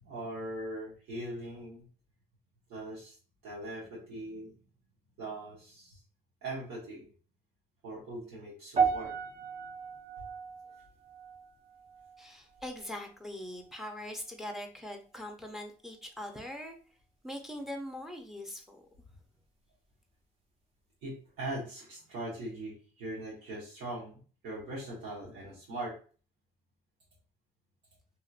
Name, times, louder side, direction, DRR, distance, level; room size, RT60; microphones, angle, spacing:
voice 1, 0.0-1.9 2.7-3.2 3.4-4.5 5.2-6.0 6.4-7.1 7.8-9.2 21.0-26.0, right 1 dB, 75° right, -6 dB, 1.2 m, -41 dB
sound 1, 8.8-13.1 13.4-13.8 14.4-14.5, right 6 dB, 35° right, 0.8 m, -35 dB
voice 2, 12.2-16.8 17.2-18.8, left 1 dB, ahead, 4 dB, 0.6 m, -42 dB
2.9 x 2.8 x 2.4 m, 0.39 s
cardioid pair, 110°, 17 cm